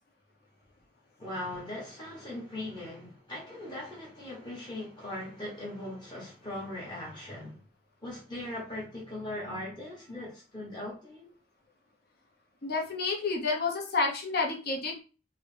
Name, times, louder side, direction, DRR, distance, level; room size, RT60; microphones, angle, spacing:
voice 1, 1.2-7.6 8.0-11.3, left 1 dB, 20° left, 1.0 m, -39 dB
voice 2, 12.6-15.0, left 3 dB, 50° left, 0.7 m, -30 dB
3.8 x 2.0 x 3.2 m
head